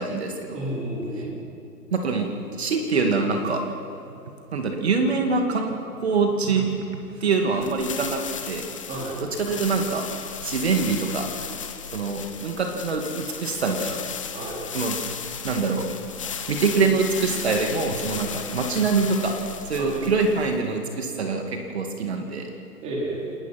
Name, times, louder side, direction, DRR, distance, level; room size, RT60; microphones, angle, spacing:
voice 1, 0.0-0.7 1.9-2.3 2.6-3.6 4.5-8.7 9.4-10.0 10.4-11.3 11.9-14.0 14.7-15.1 15.4-15.9 16.5-19.3 19.7-22.5, right 4 dB, 40° right, 4 dB, 2.3 m, -24 dB
voice 2, 0.5-1.4 8.9-9.2 14.3-14.6 19.8-20.0 22.8-23.3, right 1 dB, 15° right, -3 dB, 4.5 m, -31 dB
sound 1, 7.6-20.7, left 7 dB, 20° left, 0.9 m, -35 dB
28.5 x 21.5 x 6.0 m, 2.7 s
figure-of-eight pair, 145°, 49 cm